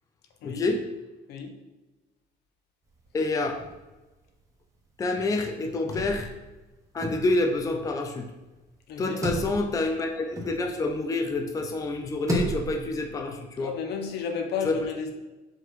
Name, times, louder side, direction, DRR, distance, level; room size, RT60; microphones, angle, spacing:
voice 1, 0.4-0.8 3.1-3.6 5.0-6.3 6.9-8.3 9.0-13.7 14.6-14.9, left 2 dB, 20° left, 4 dB, 0.4 m, -27 dB
sound 1, 2.9-4.1 4.4-4.5 4.8-11.2 11.7-12.9, right 1 dB, 20° right, 0.8 m, -34 dB
voice 2, 8.9-9.2 13.6-15.1, left 6 dB, 75° left, 4 dB, 0.7 m, -32 dB
4.7 x 2.9 x 3.0 m, 1.1 s
cardioid pair, 110°, 17 cm